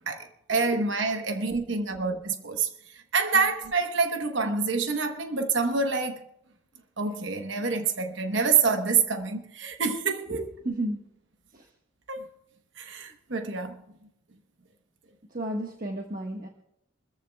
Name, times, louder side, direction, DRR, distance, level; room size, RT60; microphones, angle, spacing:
voice 1, 0.1-2.7 3.1-6.2 7.0-10.4 12.1-12.3 12.8-13.8, right 4 dB, 60° right, 1.0 m, -27 dB
voice 2, 10.3-11.1 11.5-11.7 15.3-16.5, right 1 dB, 40° right, 1.3 m, -33 dB
27.5 x 14.5 x 2.3 m
head